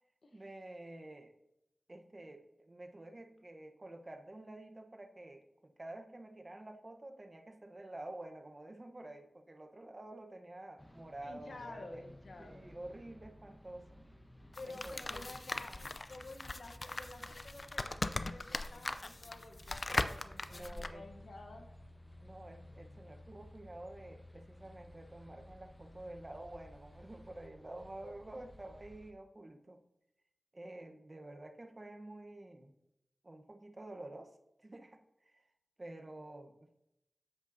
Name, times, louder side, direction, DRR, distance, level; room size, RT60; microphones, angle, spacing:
voice 1, 0.3-1.3 1.9-12.0 12.4-13.9 14.6-15.3 15.7-15.8 20.5-21.1 22.2-29.8 30.5-32.7 33.2-35.0 35.3-35.4 35.8-36.8, right 1 dB, 45° right, 5 dB, 0.9 m, -49 dB
sound 1, 10.8-29.1, left 1 dB, 15° left, 0.9 m, -56 dB
voice 2, 11.2-12.7 14.5-21.7, left 2 dB, 85° left, 4 dB, 1.0 m, -51 dB
sound 2, 14.5-20.9, left 2 dB, 50° left, 0.4 m, -39 dB
9.6 x 7.7 x 2.7 m, 0.85 s
cardioid pair, 45°, 0 cm